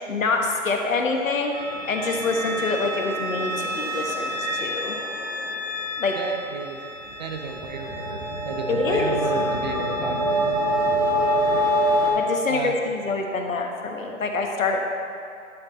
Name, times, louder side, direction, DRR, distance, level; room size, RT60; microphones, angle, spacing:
voice 1, 0.1-1.5 1.9-5.0 6.0-6.2 8.7-9.2 12.1-14.8, left 3 dB, 70° left, 3 dB, 1.3 m, -26 dB
sound 1, 1.5-12.1, equal, 15° right, 1.3 m, -26 dB
voice 2, 6.2-6.9 7.2-10.8 11.5-11.8 12.5-12.9, right 4 dB, 35° right, 4 dB, 0.5 m, -33 dB
11.0 x 5.7 x 4.0 m, 2.4 s
hypercardioid pair, 145°, 41 cm